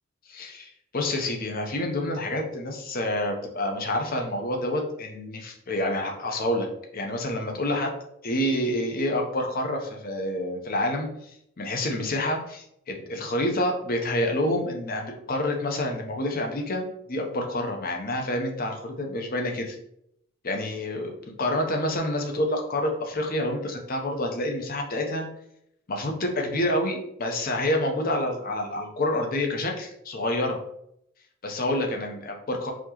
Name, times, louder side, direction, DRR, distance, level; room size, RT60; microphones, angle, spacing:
voice 1, 0.3-6.7 6.9-7.9 8.2-11.1 11.6-19.8 20.4-25.3 25.9-30.6 31.4-32.7, left 1 dB, 45° left, 2 dB, 0.7 m, -28 dB
4.2 x 2.8 x 2.9 m, 0.74 s
head